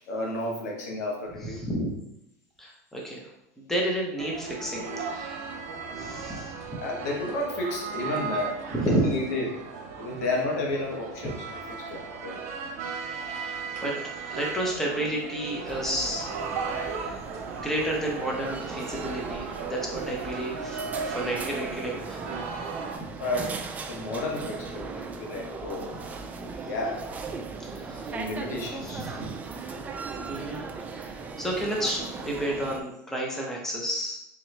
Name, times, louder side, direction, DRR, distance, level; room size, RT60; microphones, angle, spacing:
voice 1, 0.1-1.6 6.8-8.6 8.8-9.6 10.0-11.4 11.9-12.4 23.2-23.5 23.9-26.0 26.6-27.0 28.1-29.0, left 2 dB, 90° left, -1 dB, 1.1 m, -31 dB
voice 2, 1.6-1.9 2.6-3.3 3.6-5.4 5.9-6.5 8.7-9.0 13.3-13.9 14.3-16.3 16.8-17.2 17.5-22.2 27.6-28.1 28.8-29.3 30.3-34.2, right 1 dB, 5° left, -2 dB, 0.8 m, -31 dB
sound 1, 4.2-23.0, right 5 dB, 80° right, 0.7 m, -36 dB
sound 2, 15.7-32.8, right 4 dB, 20° right, 0.3 m, -38 dB
3.6 x 3.0 x 3.3 m, 0.82 s
supercardioid pair, 140°, 8 cm